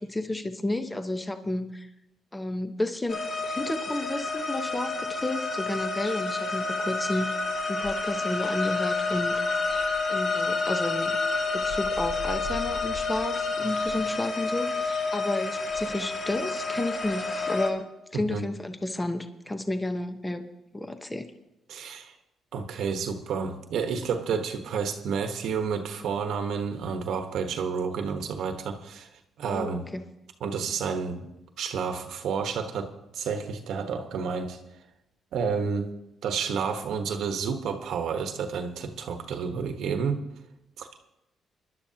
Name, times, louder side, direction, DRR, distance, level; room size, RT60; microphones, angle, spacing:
voice 1, 0.0-1.9 2.3-7.4 7.7-9.6 10.1-11.2 11.5-17.8 18.1-20.4 20.7-21.3 29.4-30.0, left 1 dB, 15° left, 1.0 m, -31 dB
sound 1, 3.1-17.7, left 3 dB, 50° left, 2.1 m, -29 dB
voice 2, 18.1-18.4 21.7-22.1 22.5-29.1 29.4-29.9 30.4-31.3 31.6-34.6 35.3-35.9 36.2-40.2 40.8-40.9, right 6 dB, 75° right, 1.2 m, -30 dB
22.5 x 11.5 x 2.9 m
cardioid pair, 90°, 0 cm